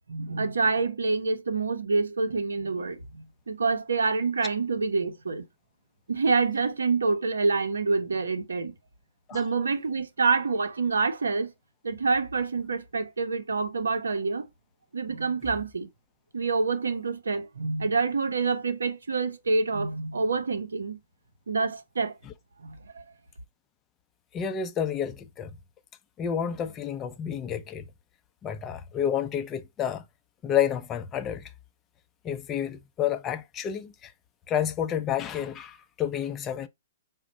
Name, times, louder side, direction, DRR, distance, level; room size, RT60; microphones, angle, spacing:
voice 1, 0.1-5.4 6.1-8.7 9.3-11.5 11.8-14.5 14.9-15.9 16.3-21.0 21.5-22.1 22.6-23.0, right 4 dB, 80° right, 0.7 m, -27 dB
voice 2, 24.3-25.5 26.2-27.8 28.4-30.0 30.4-31.5 32.2-34.1 34.5-36.7, left 9 dB, 25° left, 0.5 m, -30 dB
5.0 x 2.1 x 3.8 m
figure-of-eight pair, 120°, 0 cm